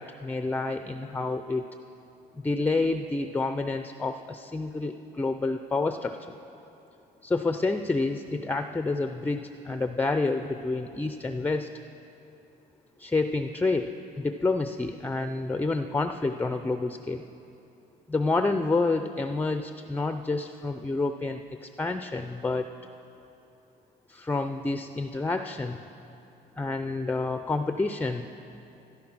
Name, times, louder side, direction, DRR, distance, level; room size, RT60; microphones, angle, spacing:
voice 1, 0.0-1.7 2.4-6.4 7.2-11.7 13.0-17.2 18.1-22.7 24.1-25.8 26.6-28.3, left 3 dB, 10° left, 8 dB, 0.4 m, -29 dB
14.5 x 13.0 x 6.1 m, 3.0 s
cardioid pair, 110°, 17 cm